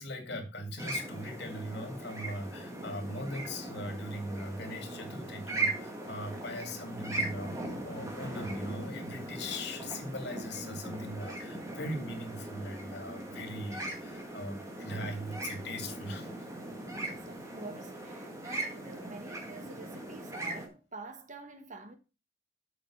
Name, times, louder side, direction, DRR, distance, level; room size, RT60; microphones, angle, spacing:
voice 1, 0.0-16.3, left 1 dB, 60° left, 2.4 m, -40 dB
sound 1, 0.8-20.7, right 2 dB, 15° right, 1.9 m, -39 dB
voice 2, 16.9-22.0, right 3 dB, 40° right, 1.2 m, -47 dB
8.1 x 6.2 x 5.2 m
head